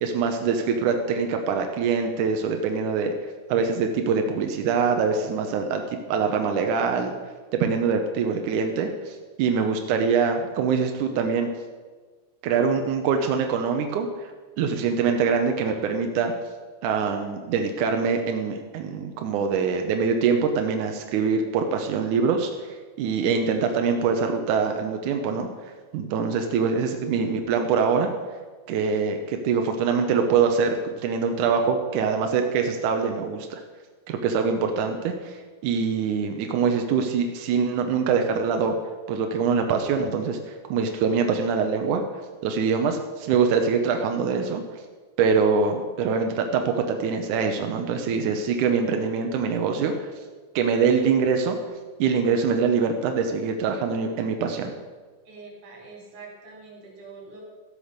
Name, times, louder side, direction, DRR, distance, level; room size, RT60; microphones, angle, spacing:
voice 1, 0.0-3.1 3.5-5.8 6.1-7.1 7.5-11.5 12.4-14.3 14.6-16.3 16.8-25.5 25.9-28.1 28.7-33.6 34.1-35.4 35.6-38.7 39.1-42.0 42.4-44.6 45.2-50.1 50.5-51.6 52.0-54.7, right 5 dB, 80° right, 5 dB, 1.8 m, -24 dB
voice 2, 55.3-57.4, right 4 dB, 40° right, -2 dB, 4.0 m, -44 dB
13.5 x 8.3 x 6.7 m, 1.4 s
omnidirectional pair, 4.8 m